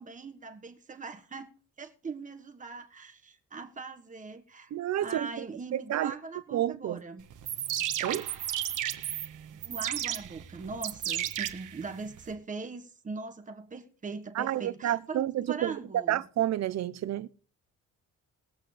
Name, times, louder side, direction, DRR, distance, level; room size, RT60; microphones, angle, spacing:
voice 1, 0.0-1.5 1.8-4.7 5.0-7.3 9.6-16.2, right 4 dB, 25° right, 1.5 m, -41 dB
voice 2, 4.7-5.5 5.7-6.1 6.5-7.0 8.0-8.3 14.3-17.3, right 12 dB, 60° right, 0.7 m, -30 dB
sound 1, 7.3-12.3, right 11 dB, 90° right, 1.4 m, -34 dB
21.5 x 8.1 x 3.3 m
wide cardioid pair, 170°, 30 cm